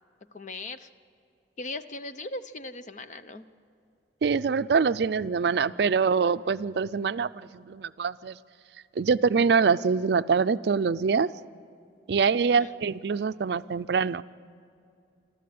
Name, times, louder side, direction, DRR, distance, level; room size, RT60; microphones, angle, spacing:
voice 1, 0.3-0.9 1.6-3.5 12.4-12.7, left 2 dB, 45° left, 10 dB, 0.8 m, -38 dB
voice 2, 4.2-8.4 9.0-11.3 12.1-14.2, right 5 dB, 65° right, 14 dB, 0.4 m, -24 dB
28.0 x 13.0 x 8.6 m, 2.5 s
head